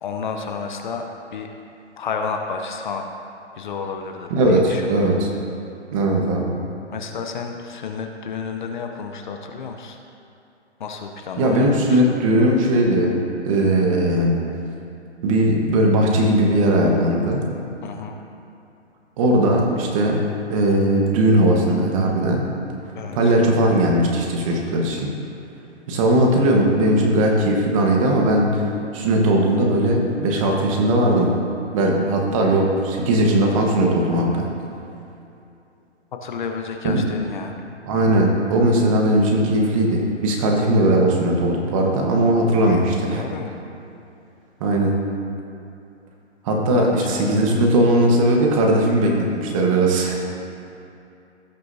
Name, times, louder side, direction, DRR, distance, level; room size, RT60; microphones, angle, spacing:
voice 1, 0.0-1.5 2.0-3.1 3.6-4.9 6.9-10.0 10.8-12.2 17.8-18.2 22.9-23.3 36.2-37.6 42.6-43.6 46.7-47.6, left 5 dB, 45° left, 4 dB, 0.8 m, -31 dB
voice 2, 4.3-5.3 5.9-6.5 11.4-13.1 13.4-14.5 15.2-17.4 19.2-22.5 23.1-25.1 25.9-28.6 28.9-31.3 31.7-34.5 36.8-37.0 37.9-43.2 44.6-45.0 46.4-50.2, right 1 dB, 30° right, 0 dB, 1.3 m, -18 dB
17.0 x 6.2 x 2.8 m, 2.7 s
hypercardioid pair, 145°, 35 cm